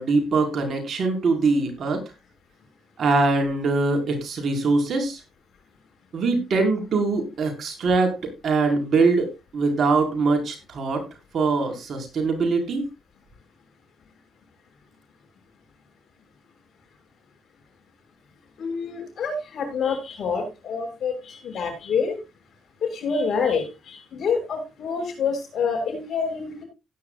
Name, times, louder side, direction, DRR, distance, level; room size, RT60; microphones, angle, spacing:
voice 1, 0.0-2.0 3.0-5.2 6.1-11.0 11.3-12.9, right 3 dB, 55° right, 4 dB, 5.1 m, -23 dB
voice 2, 18.6-22.2 22.8-26.6, left 5 dB, 60° left, 5 dB, 6.7 m, -27 dB
17.0 x 10.5 x 2.4 m, 0.26 s
cardioid pair, 90°, 0 cm